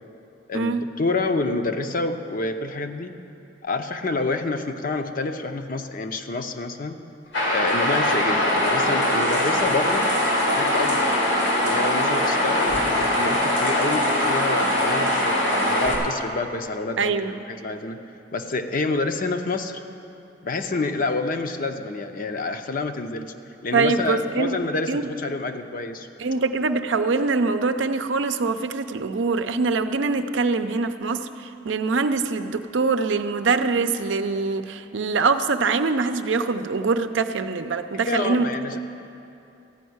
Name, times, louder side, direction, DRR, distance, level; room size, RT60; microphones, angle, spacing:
voice 1, 0.5-3.1 3.6-7.0 7.5-10.1 10.6-11.2 11.6-18.0 18.3-19.8 20.4-23.3 23.6-26.1 38.0-38.8, left 3 dB, 50° left, 7 dB, 0.7 m, -28 dB
sound 1, 7.3-15.9, left 1 dB, 90° left, 2.5 m, -22 dB
voice 2, 17.0-17.4 23.7-24.6 24.9-25.0 26.2-38.5, right 4 dB, 75° right, 9 dB, 0.6 m, -23 dB
14.5 x 5.5 x 9.4 m, 2.7 s
head